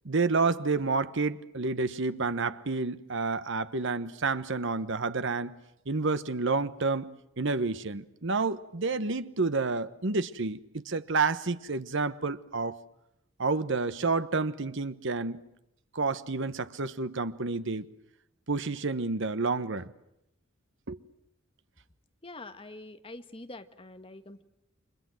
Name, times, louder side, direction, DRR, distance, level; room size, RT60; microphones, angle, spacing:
voice 1, 0.0-5.5 5.9-12.8 13.4-15.4 15.9-17.9 18.5-19.9 20.9-21.0, right 3 dB, 65° right, 1.1 m, -29 dB
voice 2, 22.2-24.4, left 2 dB, 25° left, 1.4 m, -45 dB
30.0 x 24.5 x 7.8 m
head